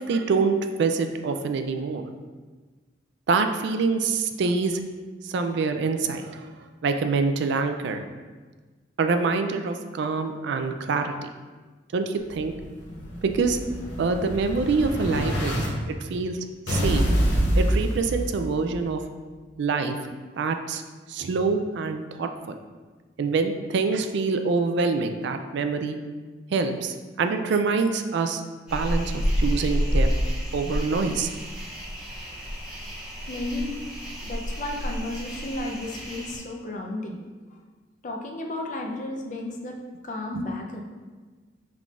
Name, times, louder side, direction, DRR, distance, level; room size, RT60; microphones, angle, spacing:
voice 1, 0.0-2.0 3.3-4.8 5.2-6.5 6.8-8.0 9.0-11.3 11.9-12.5 13.2-13.6 14.0-16.4 16.7-17.0 17.5-19.0 19.6-20.0 20.4-20.8 21.1-22.6 23.2-26.0 26.5-28.4 28.7-30.1 30.5-31.3 40.3-40.5, right 4 dB, 65° right, 7 dB, 0.4 m, -25 dB
Explosion, 12.3-15.7 16.7-18.7, equal, 70° left, 0.9 m, -26 dB
sound 1, 28.7-36.4, equal, 5° right, 1.5 m, -29 dB
voice 2, 33.3-33.8 34.2-37.2 37.5-37.6 38.0-40.8, left 2 dB, 45° left, 1 dB, 0.5 m, -33 dB
5.7 x 3.6 x 2.4 m, 1.4 s
head